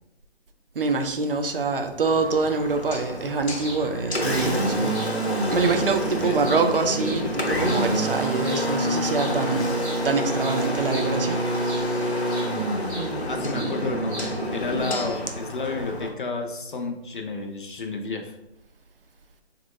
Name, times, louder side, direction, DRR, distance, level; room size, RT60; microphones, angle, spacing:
voice 1, 0.8-5.0 5.5-9.8 10.0-12.1, right 4 dB, 60° right, 6 dB, 0.5 m, -25 dB
Engine, 2.0-16.1, equal, 80° left, 0.9 m, -27 dB
sound 1, 3.6-3.8 4.3-4.5 4.9-5.1 5.5-5.7 6.2-7.8 8.4-8.6 9.1-9.3 9.6-11.9 12.3-12.5 12.9-13.8 14.1-14.3 14.8-15.2, right 1 dB, 5° left, 0.7 m, -39 dB
voice 2, 13.3-18.4, left 3 dB, 50° left, 4 dB, 0.5 m, -31 dB
4.0 x 2.2 x 3.1 m, 0.88 s
figure-of-eight pair, 145°, 32 cm